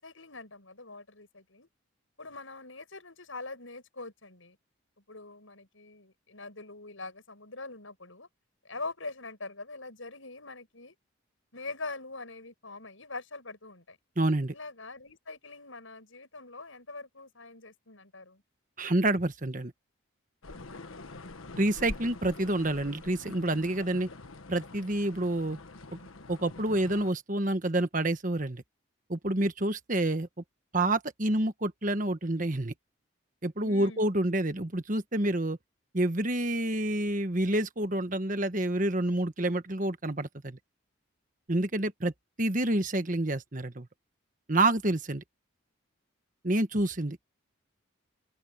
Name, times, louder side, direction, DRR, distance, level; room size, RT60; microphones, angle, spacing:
voice 1, 0.0-1.7 2.2-4.6 5.1-8.3 8.7-10.9 11.5-14.0 14.5-18.4 33.6-34.0, left 3 dB, 75° left, 6.9 m, -43 dB
voice 2, 14.2-14.5 18.8-19.7 21.6-24.1 24.5-25.6 26.3-28.6 29.1-30.3 30.7-32.7 33.4-35.6 35.9-40.6 41.5-42.1 42.4-43.9 44.5-45.2 46.4-47.2, right 1 dB, 40° right, 1.4 m, -28 dB
sound 1, 20.4-27.1, left 2 dB, 90° left, 1.5 m, -45 dB
open air
head